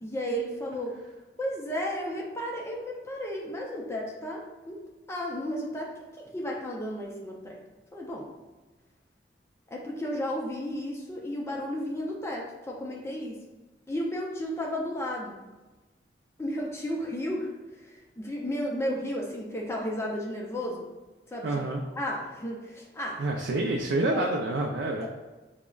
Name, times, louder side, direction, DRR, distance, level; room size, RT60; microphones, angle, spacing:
voice 1, 0.0-0.9 1.4-4.8 5.1-7.6 7.9-8.3 9.7-13.4 13.9-15.4 16.4-20.9 21.3-21.5 21.9-23.2 24.0-24.3 25.0-25.1, equal, 15° left, -1 dB, 0.4 m, -33 dB
voice 2, 21.4-21.8 23.2-25.1, right 2 dB, 80° right, 0 dB, 0.4 m, -28 dB
6.0 x 2.0 x 2.3 m, 1.2 s
head